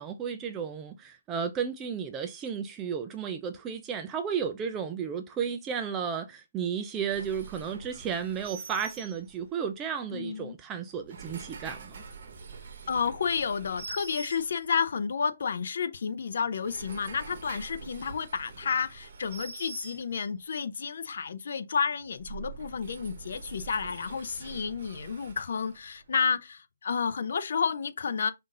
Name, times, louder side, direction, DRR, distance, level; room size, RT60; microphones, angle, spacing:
voice 1, 0.0-12.0, right 7 dB, 10° right, 0.3 m, -33 dB
sound 1, 7.1-9.6 10.9-14.9 16.4-20.5 22.0-26.2, right 5 dB, 35° right, 0.9 m, -45 dB
voice 2, 10.1-10.5 12.9-28.3, left 6 dB, 45° left, 0.5 m, -31 dB
5.6 x 2.6 x 3.7 m
hypercardioid pair, 175°, 0 cm